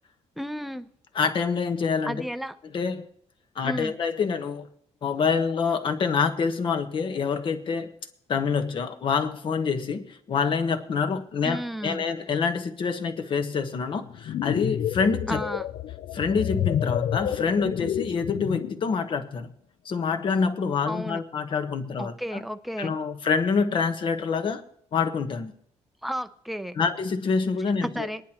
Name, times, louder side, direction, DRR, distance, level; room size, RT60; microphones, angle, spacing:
voice 1, 0.4-0.9 2.0-2.6 3.6-3.9 11.4-12.1 15.3-15.6 20.9-21.2 22.0-23.0 26.0-26.8 27.8-28.2, equal, ahead, 10 dB, 0.6 m, -32 dB
voice 2, 1.1-2.2 2.7-3.1 3.5-4.7 5.0-7.9 8.3-15.4 16.1-19.5 19.8-22.4 22.8-24.6 24.9-25.5 26.8-28.1, left 5 dB, 45° left, 8 dB, 1.1 m, -26 dB
sound 1, 14.0-18.8, left 10 dB, 60° left, 0.4 m, -29 dB
23.5 x 10.5 x 3.0 m, 0.65 s
cardioid pair, 155°, 12 cm